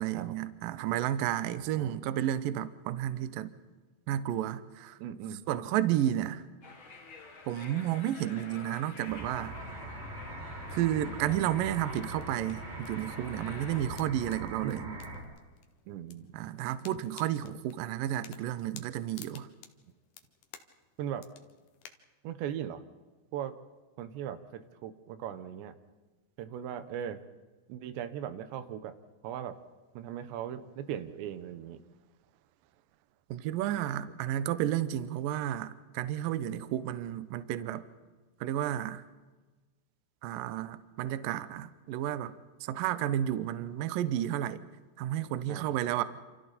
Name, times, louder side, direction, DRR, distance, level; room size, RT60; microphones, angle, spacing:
voice 1, 0.0-3.5 4.1-5.0 5.5-6.4 7.5-9.6 10.7-14.8 16.3-19.5 33.3-37.8 38.4-39.0 40.2-44.6 45.0-46.0, right 12 dB, 75° right, 13 dB, 2.2 m, -32 dB
voice 2, 1.6-2.0 5.0-5.4 14.6-15.1 15.9-16.3 21.0-21.3 22.2-22.8 23.3-23.5 24.0-25.7 26.4-27.2 27.7-28.9 29.2-29.6 29.9-31.8 45.5-45.8, right 10 dB, 90° right, 11 dB, 3.4 m, -39 dB
sound 1, 6.6-13.8, left 3 dB, 35° left, 2.4 m, -50 dB
sound 2, 9.1-15.2, right 1 dB, 55° right, 7.4 m, -42 dB
sound 3, 10.6-21.9, left 9 dB, 65° left, 2.5 m, -56 dB
28.5 x 28.0 x 4.2 m, 1.3 s
omnidirectional pair, 4.9 m